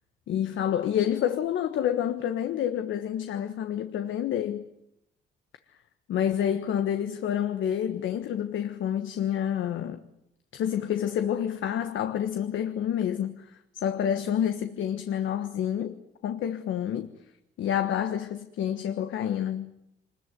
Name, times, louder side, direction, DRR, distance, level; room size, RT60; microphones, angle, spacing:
voice 1, 0.3-4.7 6.1-10.0 10.5-17.1 17.6-19.7, left 9 dB, 75° left, 1.4 m, -28 dB
25.5 x 21.0 x 9.4 m
cardioid pair, 90°, 20 cm